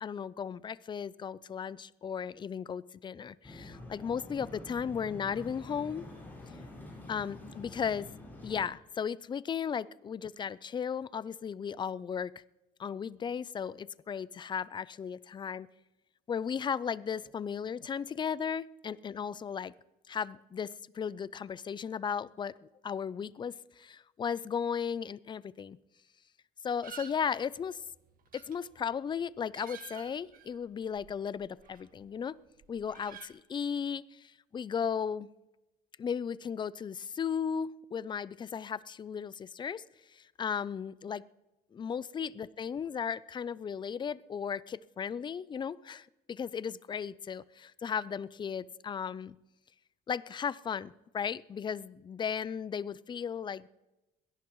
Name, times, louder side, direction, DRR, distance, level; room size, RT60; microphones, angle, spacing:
voice 1, 0.0-6.1 7.1-8.1 8.4-12.3 12.8-15.7 16.3-19.7 20.1-22.5 22.8-25.8 26.6-27.8 28.3-32.4 32.7-35.3 36.0-39.8 40.1-41.2 41.7-49.4 50.1-53.7, left 7 dB, 25° left, 19 dB, 0.4 m, -36 dB
sound 1, 3.4-8.7, left 2 dB, 10° left, 5.6 m, -47 dB
sound 2, 26.8-32.2 32.5-33.3, right 9 dB, 55° right, 1.5 m, -52 dB
21.5 x 17.0 x 3.1 m, 1.0 s
cardioid pair, 110°, 17 cm